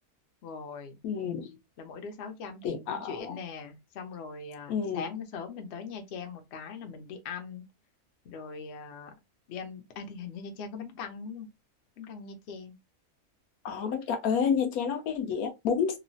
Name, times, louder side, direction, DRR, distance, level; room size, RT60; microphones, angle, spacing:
voice 1, 0.4-1.0 1.8-7.6 8.2-9.1 9.5-11.5 12.0-12.8, left 5 dB, 60° left, 0.8 m, -41 dB
voice 2, 1.0-1.6 2.6-3.4 4.7-5.1 13.6-16.0, left 7 dB, 75° left, 1.1 m, -29 dB
3.0 x 2.3 x 2.5 m
omnidirectional pair, 1.6 m